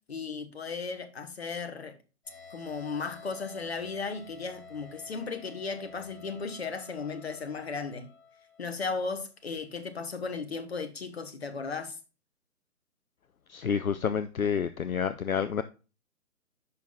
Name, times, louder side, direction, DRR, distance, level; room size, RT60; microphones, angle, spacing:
voice 1, 0.1-2.0 2.5-8.1 8.6-11.9, left 4 dB, 45° left, 1.1 m, -36 dB
sound 1, 2.2-9.2, left 5 dB, 5° left, 4.1 m, -51 dB
voice 2, 13.5-15.6, left 7 dB, 65° left, 0.6 m, -29 dB
10.0 x 5.6 x 2.2 m
figure-of-eight pair, 145°, 46 cm